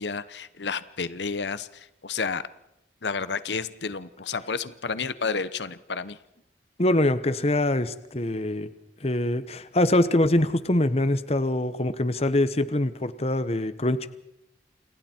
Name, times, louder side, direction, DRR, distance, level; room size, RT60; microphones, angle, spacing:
voice 1, 0.0-2.4 3.0-6.2, left 5 dB, 85° left, 15 dB, 1.0 m, -31 dB
voice 2, 6.8-8.7 9.0-14.1, left 1 dB, 35° left, 13 dB, 1.1 m, -24 dB
29.0 x 28.5 x 4.5 m, 0.84 s
head